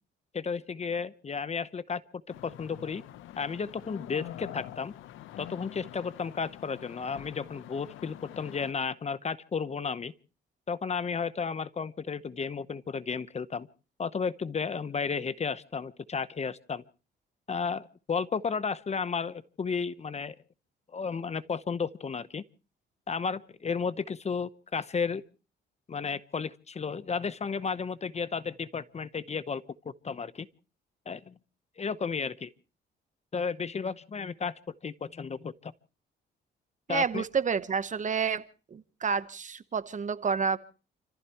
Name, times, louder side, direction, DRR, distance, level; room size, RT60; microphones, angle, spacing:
voice 1, 0.3-2.0 2.4-3.0 3.4-4.9 5.4-10.1 10.7-13.7 14.0-16.8 17.5-20.3 20.9-22.4 23.1-25.2 25.9-30.5 31.1-31.3 31.8-32.5 33.3-35.7 36.9-37.2, left 5 dB, 35° left, 0.9 m, -33 dB
sound 1, 2.3-8.7, left 13 dB, 85° left, 0.9 m, -46 dB
voice 2, 36.9-38.4 38.7-40.6, right 6 dB, 40° right, 1.0 m, -29 dB
30.0 x 15.0 x 3.0 m
cardioid pair, 90°, 20 cm